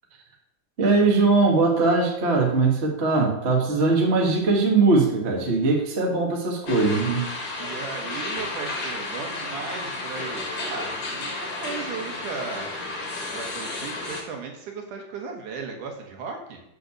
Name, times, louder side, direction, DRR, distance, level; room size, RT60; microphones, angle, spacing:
voice 1, 0.8-7.3, right 3 dB, 35° right, -1 dB, 1.0 m, -21 dB
sound 1, 6.7-14.2, left 2 dB, 40° left, 1.5 m, -32 dB
voice 2, 7.5-12.7 13.3-16.6, right 5 dB, 65° right, 2 dB, 2.5 m, -36 dB
6.8 x 6.5 x 6.4 m, 0.78 s
omnidirectional pair, 4.1 m